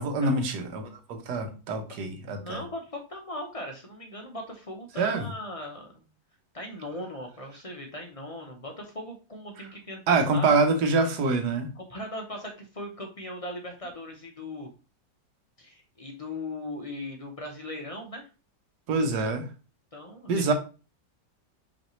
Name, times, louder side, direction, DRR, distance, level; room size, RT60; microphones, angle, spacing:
voice 1, 0.0-2.6 5.0-5.3 10.1-11.7 18.9-19.5 20.3-20.5, right 3 dB, 80° right, 6 dB, 1.4 m, -25 dB
voice 2, 2.4-6.0 6.5-10.6 11.8-14.7 15.6-18.3 19.9-20.5, left 1 dB, 35° left, 2 dB, 0.5 m, -39 dB
5.4 x 3.2 x 3.0 m, 0.34 s
omnidirectional pair, 1.7 m